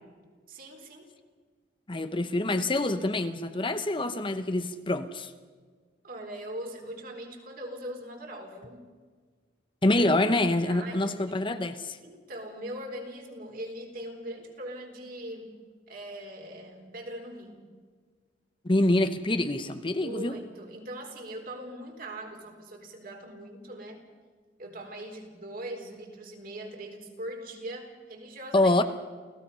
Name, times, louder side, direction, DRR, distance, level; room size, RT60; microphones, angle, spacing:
voice 1, 0.5-1.1 6.0-8.9 9.9-10.0 10.7-11.5 12.0-15.6 15.9-17.7 20.0-24.0 24.6-28.7, right 1 dB, 55° right, 2 dB, 4.0 m, -41 dB
voice 2, 1.9-5.3 9.8-12.0 18.6-20.4 28.5-28.8, left 2 dB, 30° left, 9 dB, 0.9 m, -26 dB
29.0 x 16.5 x 5.7 m, 1.6 s
head